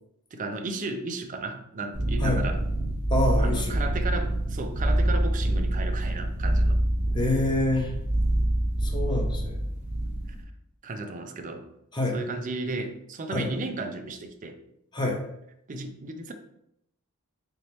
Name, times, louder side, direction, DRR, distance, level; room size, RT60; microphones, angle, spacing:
voice 1, 0.3-2.6 3.4-6.8 10.8-11.7 12.1-14.6 15.7-16.3, right 3 dB, 35° right, 5 dB, 0.4 m, -34 dB
sound 1, 1.9-10.4, right 1 dB, 5° right, 1.1 m, -26 dB
voice 2, 3.1-3.8 7.1-7.9 8.8-9.6 11.9-12.2 13.3-13.5 14.9-15.2, left 2 dB, 20° left, 1 dB, 0.6 m, -26 dB
3.9 x 3.4 x 2.9 m, 0.77 s
head